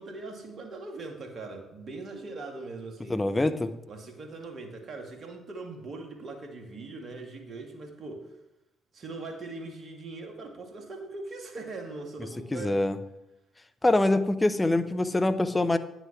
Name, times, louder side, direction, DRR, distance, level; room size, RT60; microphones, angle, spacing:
voice 1, 0.0-3.2 3.9-8.4 8.9-12.8 13.9-14.0, right 3 dB, 50° right, 3 dB, 1.9 m, -41 dB
voice 2, 3.1-3.8 12.2-13.0 13.8-15.8, left 2 dB, 20° left, 13 dB, 0.8 m, -25 dB
9.6 x 6.1 x 5.9 m, 0.90 s
hypercardioid pair, 45°, 0 cm